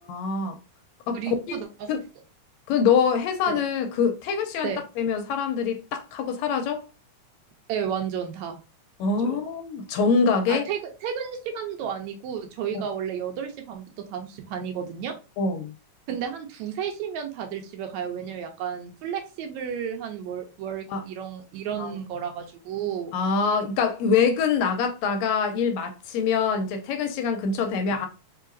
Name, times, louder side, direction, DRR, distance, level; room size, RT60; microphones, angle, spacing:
voice 1, 0.1-0.6 1.1-1.6 1.9-2.0 2.7-6.8 9.0-10.7 15.4-15.7 20.9-21.0 21.8-21.9 23.1-28.1, left 5 dB, 80° left, 1.7 m, -24 dB
voice 2, 1.1-1.9 3.5-3.6 4.6-4.8 7.7-8.6 9.2-9.4 10.5-13.9 14.1-15.1 16.1-23.2, right 8 dB, 75° right, 1.9 m, -32 dB
4.7 x 2.9 x 2.5 m
omnidirectional pair, 3.4 m